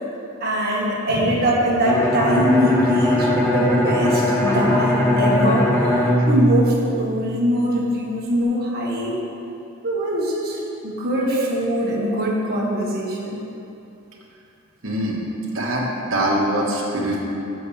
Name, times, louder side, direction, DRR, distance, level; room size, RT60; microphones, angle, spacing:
voice 1, 0.4-5.9 6.3-9.1 9.8-13.4, equal, 50° right, -4 dB, 1.6 m, -22 dB
Bowed string instrument, 1.8-7.5, left 1 dB, 15° left, 0.9 m, -20 dB
voice 2, 14.8-15.3 15.5-17.2, right 1 dB, 70° right, -3 dB, 1.5 m, -23 dB
11.0 x 7.2 x 3.4 m, 2.8 s
head